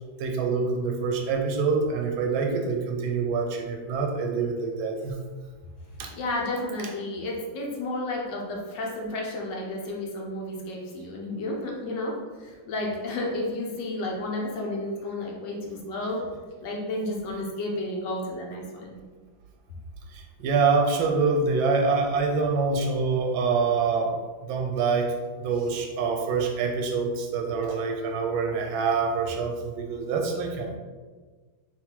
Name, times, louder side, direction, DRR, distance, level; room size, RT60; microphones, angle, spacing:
voice 1, 0.2-5.1 6.0-6.1 20.1-24.2 24.5-30.8, right 4 dB, 85° right, 2 dB, 1.4 m, -26 dB
voice 2, 6.2-16.2 16.6-19.0, left 1 dB, 75° left, -1 dB, 1.4 m, -32 dB
3.5 x 3.1 x 3.6 m, 1.4 s
omnidirectional pair, 2.1 m